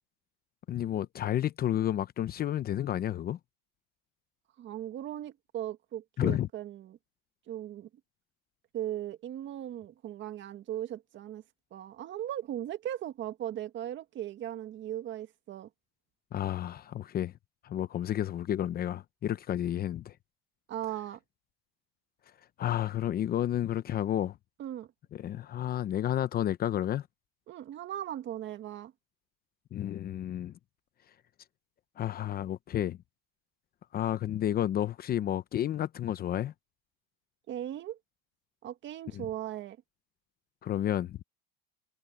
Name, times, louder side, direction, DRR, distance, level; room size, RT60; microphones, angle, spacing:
voice 1, 0.7-3.4 6.2-6.5 16.3-17.3 17.6-20.1 22.6-24.4 25.1-27.1 29.7-30.5 32.0-33.0 33.9-36.5 39.1-39.3 40.6-41.2, left 11 dB, 30° left, 0.8 m, -31 dB
voice 2, 4.6-7.0 7.5-7.9 8.7-11.4 11.7-15.7 20.7-21.2 24.6-24.9 27.5-28.9 37.5-38.0 38.6-39.8, right 12 dB, 40° right, 1.7 m, -38 dB
supercardioid pair, 135°, 30 cm